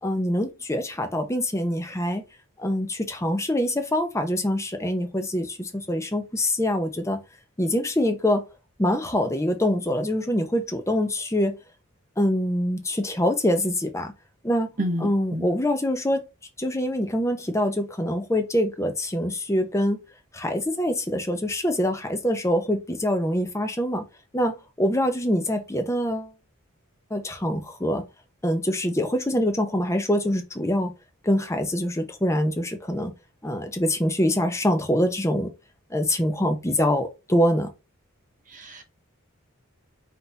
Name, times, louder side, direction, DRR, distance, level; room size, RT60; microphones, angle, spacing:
voice 1, 0.0-2.2 2.6-7.2 7.6-8.4 8.8-11.5 12.2-14.1 14.4-14.7 15.0-16.2 16.6-20.0 20.3-24.0 24.3-26.3 27.1-28.0 28.4-30.9 31.2-33.1 33.4-35.5 35.9-37.7, left 1 dB, 15° left, 0.7 m, -24 dB
voice 2, 14.8-15.5 38.5-38.8, equal, 40° right, 0.9 m, -29 dB
3.9 x 2.8 x 3.9 m
head